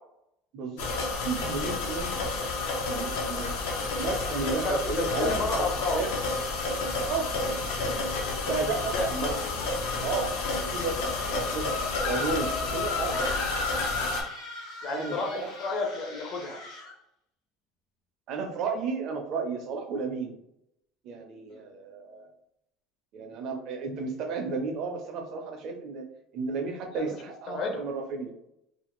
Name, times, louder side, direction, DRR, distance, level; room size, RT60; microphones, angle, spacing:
voice 1, 0.5-2.1 2.9-3.5 4.0-5.7 5.9-6.1 7.0-7.3 8.5-9.4 10.0-10.4 10.7-11.7 12.0-13.2 14.9-15.5 18.3-20.4 21.0-22.3 23.1-26.1 26.3-28.3, right 4 dB, 40° right, 4 dB, 0.4 m, -33 dB
sound 1, 0.8-14.2, left 3 dB, 90° left, 0.6 m, -30 dB
voice 2, 4.4-6.0 8.7-9.1 14.8-16.6 21.5-21.6 26.9-27.0 27.5-27.8, left 3 dB, 35° left, 3 dB, 0.5 m, -31 dB
sound 2, 13.1-17.0, left 1 dB, 55° left, 0.8 m, -42 dB
2.4 x 2.4 x 2.9 m, 0.78 s
cardioid pair, 175°, 0 cm